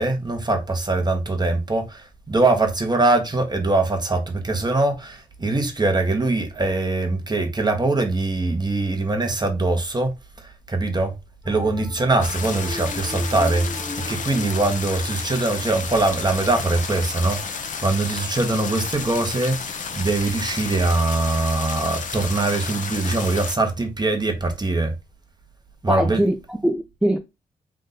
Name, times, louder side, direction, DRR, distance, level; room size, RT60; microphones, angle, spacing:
voice 1, 0.0-10.1 10.4-11.1 11.4-24.9 25.8-26.2, right 2 dB, 25° right, 1.3 m, -22 dB
sound 1, 11.4-16.7, equal, 10° left, 1.2 m, -35 dB
sound 2, 12.2-23.5, left 5 dB, 55° left, 0.7 m, -32 dB
voice 2, 25.9-27.2, equal, 5° right, 0.5 m, -22 dB
3.6 x 2.6 x 3.9 m
supercardioid pair, 50°, 16 cm